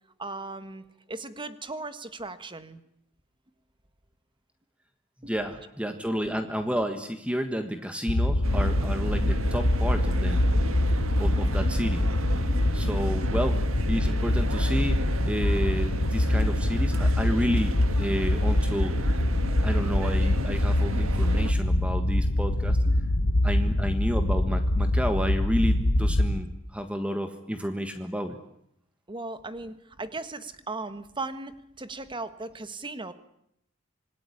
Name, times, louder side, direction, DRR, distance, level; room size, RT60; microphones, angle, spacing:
voice 1, 0.2-2.8 5.2-5.4 12.7-13.1 22.8-23.0 23.4-23.8 29.1-33.1, right 3 dB, 25° right, 11 dB, 1.5 m, -38 dB
voice 2, 5.2-10.4 11.2-12.1 12.7-19.2 19.6-22.8 23.4-28.4, equal, 5° right, 7 dB, 1.5 m, -31 dB
sound 1, 8.1-26.4, left 1 dB, 70° left, 1.3 m, -24 dB
sound 2, 8.4-21.5, right 2 dB, 65° right, 2.0 m, -36 dB
26.5 x 19.5 x 9.9 m, 0.77 s
head